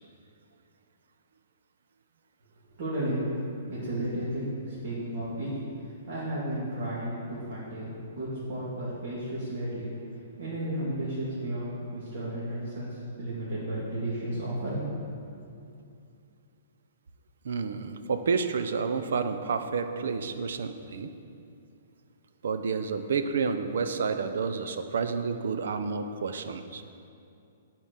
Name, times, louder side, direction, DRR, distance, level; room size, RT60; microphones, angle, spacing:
voice 1, 2.8-3.3 3.7-5.5 6.1-9.9 10.4-15.0, right 1 dB, 45° right, -10 dB, 2.3 m, -33 dB
voice 2, 17.4-21.1 22.4-26.8, right 5 dB, 65° right, 8 dB, 0.6 m, -30 dB
9.1 x 4.5 x 6.5 m, 2.6 s
hypercardioid pair, 170°, 0 cm